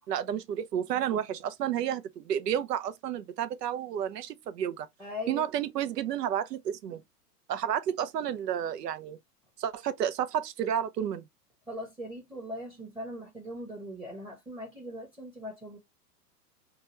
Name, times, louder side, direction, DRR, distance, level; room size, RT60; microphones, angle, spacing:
voice 1, 0.1-4.9 5.3-7.0 7.5-9.2 9.6-11.2, right 9 dB, 80° right, 0.7 m, -31 dB
voice 2, 5.0-5.5 11.7-15.8, left 1 dB, 5° right, 0.9 m, -40 dB
3.0 x 2.3 x 2.8 m
hypercardioid pair, 115°, 48 cm